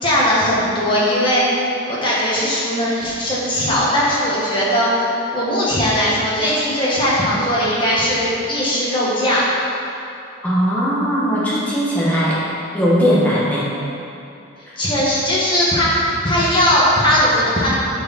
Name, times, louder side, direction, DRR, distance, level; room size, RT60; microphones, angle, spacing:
voice 1, 0.0-9.4 14.8-17.7, equal, 25° left, -7 dB, 1.5 m, -18 dB
voice 2, 10.4-12.4 12.7-13.7 14.7-14.8, equal, 5° left, -9 dB, 1.3 m, -18 dB
6.5 x 4.5 x 5.8 m, 2.7 s
head